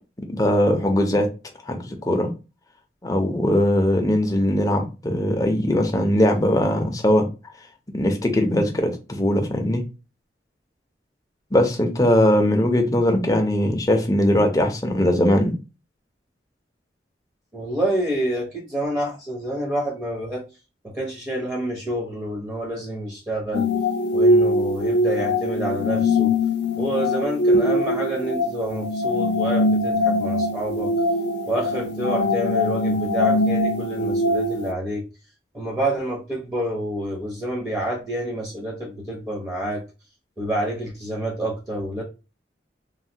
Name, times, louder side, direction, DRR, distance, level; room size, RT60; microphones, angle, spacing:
voice 1, 0.3-1.3 1.7-2.3 3.0-7.3 7.9-9.8 11.5-15.5, left 1 dB, 20° left, 4 dB, 0.6 m, -20 dB
voice 2, 17.5-20.4 20.8-23.7 24.1-26.3 26.8-30.9 31.5-35.0 35.5-39.8 40.4-42.0, right 1 dB, 15° right, -1 dB, 0.7 m, -28 dB
sound 1, 23.5-34.7, left 1 dB, 70° left, 0.4 m, -22 dB
3.2 x 2.2 x 2.7 m, 0.30 s
head